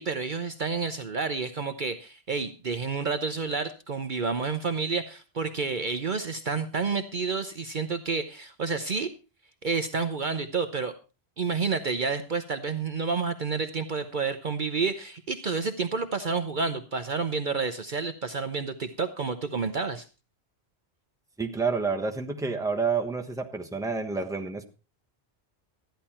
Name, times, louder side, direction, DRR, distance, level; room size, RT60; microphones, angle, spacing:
voice 1, 0.0-9.1 9.6-10.9 11.4-20.1, right 4 dB, 50° right, 8 dB, 0.9 m, -29 dB
voice 2, 21.4-24.6, right 4 dB, 5° right, 3 dB, 1.1 m, -29 dB
13.5 x 10.5 x 4.3 m, 0.31 s
omnidirectional pair, 1.1 m